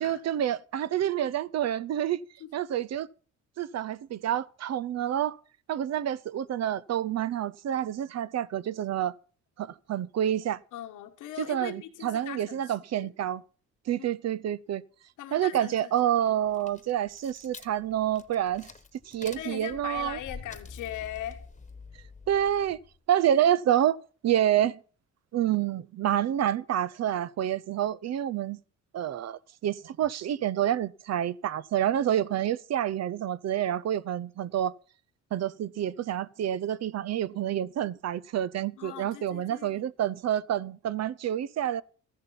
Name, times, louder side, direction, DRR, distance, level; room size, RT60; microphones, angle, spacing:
voice 1, 0.0-2.2 2.5-3.1 3.6-5.4 5.7-9.1 9.6-10.6 11.4-13.4 13.9-14.8 15.3-18.7 19.1-20.2 22.3-22.8 23.1-24.0 24.2-24.8 25.3-28.6 28.9-34.7 35.3-41.8, right 11 dB, 60° right, 0.6 m, -28 dB
voice 2, 10.7-13.1 15.2-15.9 19.4-21.4 38.8-39.9, left 12 dB, 90° left, 1.6 m, -40 dB
sound 1, 16.4-23.0, left 4 dB, 25° left, 1.3 m, -47 dB
14.0 x 11.0 x 5.7 m
cardioid pair, 90°, 30 cm